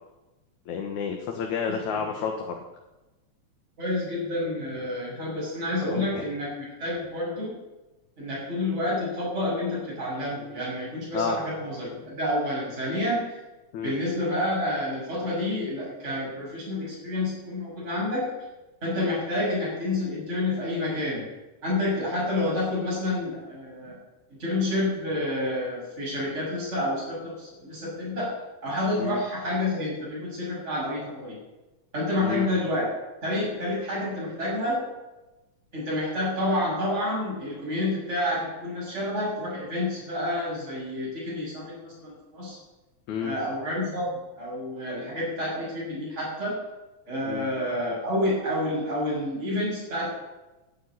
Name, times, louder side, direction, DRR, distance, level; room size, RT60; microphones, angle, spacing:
voice 1, 0.7-2.6 5.9-6.2 11.1-11.4 13.7-13.9 29.0-29.2 32.2-32.5 43.1-43.4 47.3-47.5, left 6 dB, 75° left, 2 dB, 2.9 m, -30 dB
voice 2, 1.7-2.0 3.8-7.6 8.2-13.4 13.8-18.3 18.8-21.3 21.6-24.0 24.4-28.3 28.6-31.4 31.9-32.9 33.2-34.8 35.7-42.6 43.2-44.1 44.4-46.6 47.1-50.1, left 1 dB, 20° right, -7 dB, 7.3 m, -29 dB
13.0 x 9.5 x 9.9 m, 1.0 s
omnidirectional pair, 3.4 m